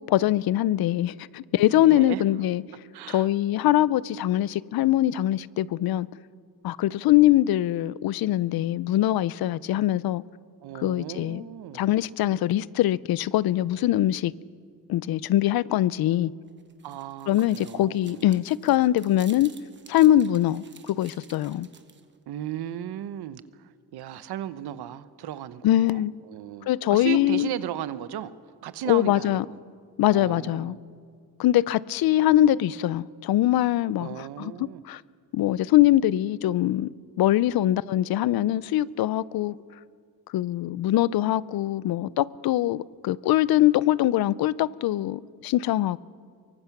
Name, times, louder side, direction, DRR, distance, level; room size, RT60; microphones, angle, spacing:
voice 1, 0.1-2.6 3.1-6.1 6.6-10.2 10.8-11.4 11.7-14.3 14.9-16.3 17.3-19.5 19.9-21.7 25.6-26.1 26.7-27.5 28.9-29.4 30.0-30.8 31.4-34.5 34.9-35.0 35.3-36.9 37.2-39.6 40.3-46.0, left 13 dB, 70° left, 0.6 m, -23 dB
voice 2, 1.7-2.2 2.9-3.3 10.6-12.0 16.8-18.4 22.3-28.3 28.6-29.6 30.1-30.8 34.0-34.8, right 11 dB, 85° right, 1.0 m, -36 dB
sound 1, 16.5-22.2, right 6 dB, 30° right, 1.1 m, -52 dB
24.0 x 23.5 x 6.0 m
cardioid pair, 155°, 38 cm